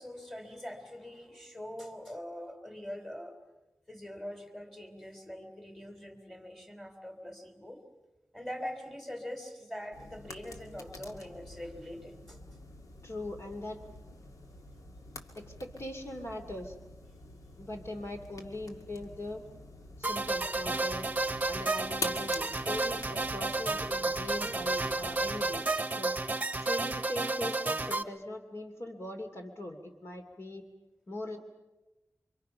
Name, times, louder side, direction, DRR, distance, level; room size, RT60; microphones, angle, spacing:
voice 1, 0.0-3.4 3.9-7.8 8.3-12.4, left 1 dB, 5° left, 5 dB, 3.5 m, -43 dB
sound 1, 9.9-25.6, left 2 dB, 80° left, 2.2 m, -47 dB
voice 2, 13.0-13.8 15.4-16.7 17.6-19.4 20.0-21.1 21.5-26.2 26.6-30.6 31.1-31.4, left 1 dB, 50° left, 4 dB, 2.9 m, -41 dB
sound 2, 20.0-28.0, right 2 dB, 25° right, 1.0 m, -32 dB
29.0 x 25.5 x 5.8 m, 1.1 s
wide cardioid pair, 100°, 6 cm